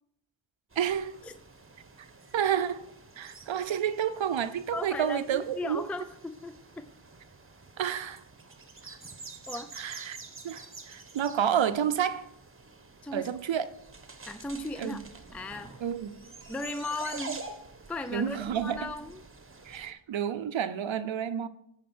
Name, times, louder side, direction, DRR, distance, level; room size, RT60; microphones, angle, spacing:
sound 1, 0.7-19.9, right 3 dB, 25° right, 1.2 m, -48 dB
voice 1, 0.8-1.2 2.0-2.1 2.3-2.9 3.2-5.9 7.8-8.2 8.9-9.0 9.8-10.2 10.4-12.3 13.1-13.7 14.8-15.0 15.8-16.1 18.1-18.9 19.6-21.5, right 9 dB, 70° right, 12 dB, 0.7 m, -30 dB
voice 2, 4.7-6.8 9.5-9.7 13.0-13.3 14.3-15.0 15.3-15.7 16.5-17.4 17.9-19.2, left 2 dB, 5° left, 10 dB, 0.5 m, -36 dB
10.0 x 4.4 x 6.1 m, 0.73 s
cardioid pair, 45°, 48 cm